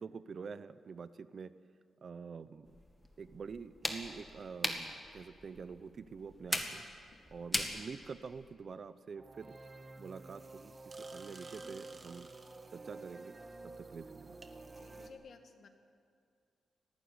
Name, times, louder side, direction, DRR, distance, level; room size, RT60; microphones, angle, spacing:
voice 1, 0.0-1.5 2.0-2.8 3.2-6.8 7.3-9.6 10.0-12.3 12.7-13.4 13.6-14.4, right 5 dB, 45° right, 14 dB, 0.7 m, -47 dB
sound 1, 2.6-8.5, left 1 dB, 5° left, 2.0 m, -41 dB
sound 2, 9.2-15.1, right 3 dB, 30° right, 1.6 m, -50 dB
voice 2, 14.8-15.7, left 5 dB, 55° left, 6 dB, 1.9 m, -56 dB
19.0 x 15.5 x 9.6 m, 2.3 s
wide cardioid pair, 125°, 0 cm